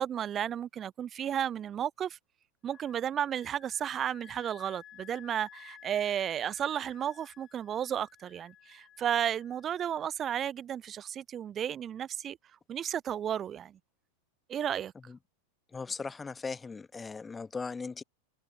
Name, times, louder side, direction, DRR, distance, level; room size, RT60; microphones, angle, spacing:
voice 1, 0.0-2.2 2.6-12.4 12.7-13.8 14.5-14.9, right 9 dB, 25° right, 0.4 m, -33 dB
Wind instrument woodwind instrument, 2.7-10.1, left 11 dB, 30° left, 2.3 m, -56 dB
voice 2, 15.7-18.0, left 4 dB, 15° left, 1.2 m, -38 dB
figure-of-eight pair, 90°, 0 cm